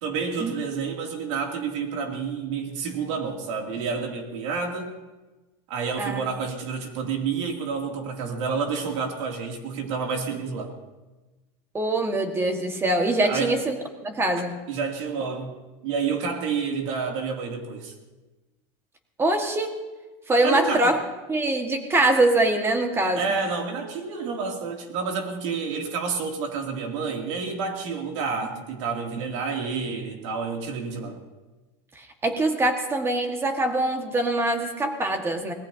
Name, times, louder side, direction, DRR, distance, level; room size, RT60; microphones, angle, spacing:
voice 1, 0.0-4.9 5.7-10.7 13.2-13.5 14.7-15.5 15.8-17.9 20.4-20.9 23.1-31.2, right 5 dB, 80° right, 2 dB, 2.9 m, -29 dB
voice 2, 11.7-14.6 19.2-19.8 20.3-21.0 21.3-23.3 28.4-28.5 32.0-35.5, right 2 dB, 15° right, 4 dB, 1.7 m, -23 dB
25.0 x 18.5 x 2.9 m, 1.1 s
supercardioid pair, 150°, 16 cm